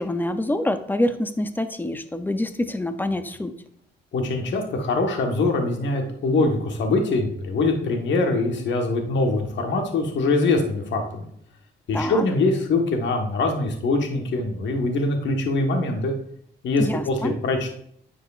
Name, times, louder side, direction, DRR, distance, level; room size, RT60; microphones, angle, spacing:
voice 1, 0.0-3.5 11.9-12.2 16.8-17.4, left 1 dB, 10° left, 10 dB, 0.5 m, -26 dB
voice 2, 4.1-11.3 11.9-16.1 16.6-17.7, left 2 dB, 65° left, 3 dB, 1.3 m, -23 dB
9.4 x 4.7 x 2.4 m, 0.68 s
cardioid pair, 90°, 20 cm